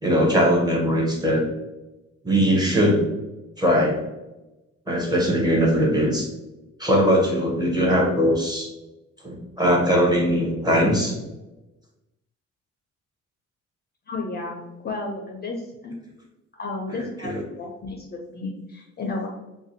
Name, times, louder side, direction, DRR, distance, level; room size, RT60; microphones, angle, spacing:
voice 1, 0.0-1.4 2.2-3.0 3.6-4.0 4.9-6.3 6.8-8.7 9.2-11.2 17.2-17.4, equal, 15° right, -2 dB, 0.8 m, -20 dB
voice 2, 14.1-15.9 16.6-19.3, left 3 dB, 35° left, 0 dB, 0.4 m, -32 dB
2.4 x 2.1 x 2.6 m, 1.0 s
cardioid pair, 90°, 30 cm